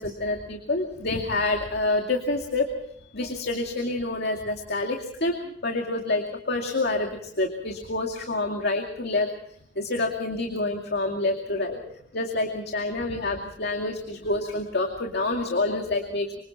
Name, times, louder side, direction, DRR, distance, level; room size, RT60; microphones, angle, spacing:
voice 1, 0.0-2.7 3.1-5.3 5.6-9.3 9.8-11.8 12.1-16.3, left 2 dB, 60° left, 3 dB, 2.4 m, -27 dB
26.0 x 25.0 x 4.4 m, 0.65 s
head